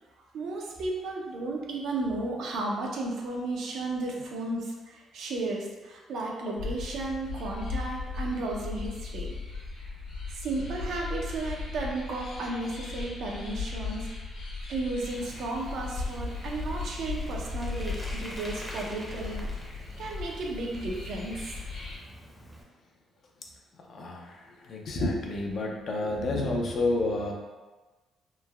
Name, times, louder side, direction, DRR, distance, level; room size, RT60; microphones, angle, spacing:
voice 1, 0.3-9.6 10.3-14.1 14.7-19.5 20.0-21.7, right 2 dB, 75° right, -1 dB, 0.5 m, -34 dB
sound 1, 6.6-22.0, left 4 dB, 85° left, 0.9 m, -37 dB
Bicycle, 15.1-22.6, equal, ahead, 0.6 m, -46 dB
voice 2, 23.8-27.3, left 2 dB, 60° left, 0 dB, 0.5 m, -30 dB
3.1 x 2.1 x 2.2 m, 1.2 s
cardioid pair, 90°, 0 cm